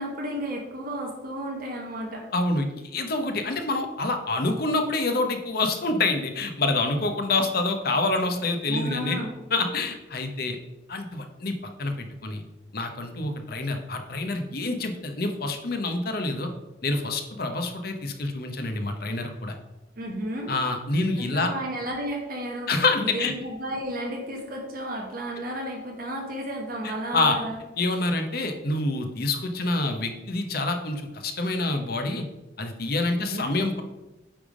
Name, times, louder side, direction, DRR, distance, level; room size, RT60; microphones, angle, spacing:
voice 1, 0.0-2.2 8.7-9.3 20.0-20.5 21.3-22.7 23.0-27.6 33.2-33.6, right 1 dB, 50° right, 0 dB, 1.2 m, -33 dB
voice 2, 2.3-9.2 9.5-10.6 10.9-11.5 11.8-12.4 12.7-16.5 16.8-19.5 20.5-21.5 22.7-23.3 26.8-27.4 27.8-32.3 32.6-33.8, left 2 dB, 55° left, 6 dB, 0.9 m, -27 dB
8.8 x 3.5 x 4.9 m, 1.0 s
head